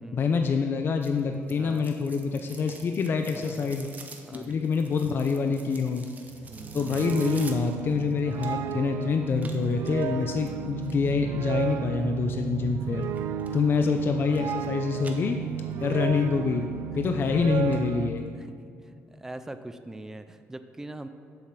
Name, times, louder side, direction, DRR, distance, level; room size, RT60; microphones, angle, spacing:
voice 1, 0.1-3.9 4.3-6.1 6.7-13.1 13.5-15.4 15.8-16.7 17.0-18.3, left 5 dB, 45° left, 5 dB, 0.5 m, -26 dB
sound 1, 1.0-8.8 9.4-11.1 13.0-13.5 13.9-14.7 15.0-15.8 16.2-16.3 16.9-17.0 17.4-17.5 17.7-17.8 18.2-18.3, right 4 dB, 30° right, 1.0 m, -48 dB
voice 2, 1.6-1.9 3.3-3.7 4.3-4.5 6.5-6.8 14.9-15.1 16.9-17.4 18.3-18.6 18.8-21.1, right 1 dB, 10° right, 9 dB, 0.5 m, -43 dB
sound 2, 6.3-18.1, right 9 dB, 75° right, 0.4 m, -33 dB
7.7 x 7.1 x 6.0 m, 2.4 s
cardioid pair, 115°, 5 cm